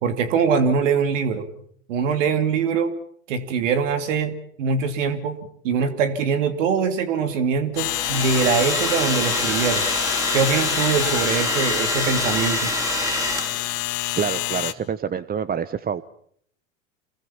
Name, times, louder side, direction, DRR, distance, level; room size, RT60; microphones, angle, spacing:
voice 1, 0.0-1.5 1.9-2.9 3.3-5.4 5.6-9.9 10.3-12.7, right 6 dB, 70° right, 9 dB, 2.8 m, -23 dB
sound 1, 7.8-14.7, left 16 dB, 50° left, 2.0 m, -27 dB
Domestic sounds home sounds, 7.8-13.8, right 1 dB, 10° right, 5.3 m, -27 dB
voice 2, 14.2-16.0, right 7 dB, 25° right, 15 dB, 1.0 m, -27 dB
28.0 x 21.5 x 7.3 m, 0.65 s
hypercardioid pair, 90°, 39 cm